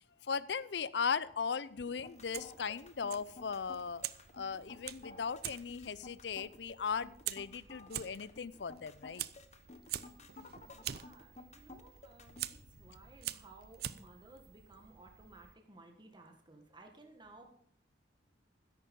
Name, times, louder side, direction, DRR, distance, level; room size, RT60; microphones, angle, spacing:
voice 1, 0.2-4.0 4.3-9.3, left 6 dB, 70° left, 18 dB, 0.6 m, -38 dB
sound 1, 1.9-12.5, left 3 dB, 40° left, 1.2 m, -53 dB
Fire, 2.1-15.5, right 12 dB, 60° right, 0.6 m, -46 dB
voice 2, 10.6-17.5, right 2 dB, 25° right, 3 dB, 1.6 m, -58 dB
13.0 x 10.5 x 5.3 m, 0.67 s
head